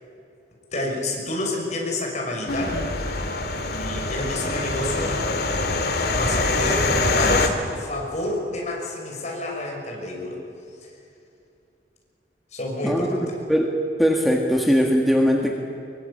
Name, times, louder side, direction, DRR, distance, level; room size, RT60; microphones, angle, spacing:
voice 1, 0.7-2.9 3.7-5.2 6.1-10.4 12.5-13.4, left 1 dB, 40° left, 0 dB, 6.3 m, -29 dB
sound 1, 2.5-7.5, left 2 dB, 60° left, 2.4 m, -24 dB
voice 2, 12.8-13.7 14.0-15.6, equal, ahead, 1 dB, 1.8 m, -20 dB
24.5 x 22.5 x 8.7 m, 2.6 s
head